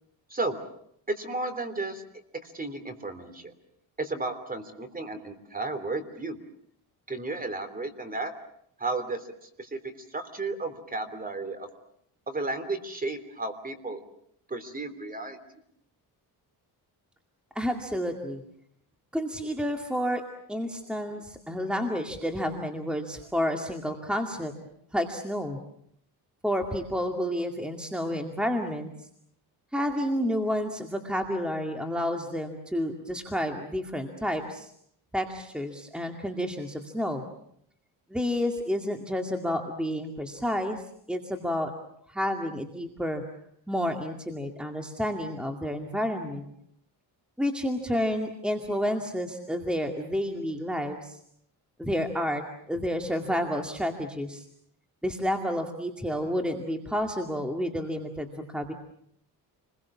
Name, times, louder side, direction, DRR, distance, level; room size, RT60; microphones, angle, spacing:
voice 1, 0.3-0.6 1.1-2.0 2.4-3.5 4.0-6.4 7.1-8.3 8.8-9.3 9.6-9.8 10.1-11.7 12.3-14.0 14.5-15.4, right 2 dB, 20° right, 10 dB, 3.2 m, -33 dB
voice 2, 17.6-18.4 19.1-20.2 20.5-24.5 24.9-25.6 26.4-28.9 29.7-34.7 35.1-37.2 38.1-40.8 41.1-41.7 42.1-43.2 43.7-46.5 47.4-51.2 51.8-54.4 55.0-58.7, equal, ahead, 4 dB, 2.3 m, -30 dB
29.5 x 22.0 x 7.3 m, 0.70 s
cardioid pair, 125°, 40 cm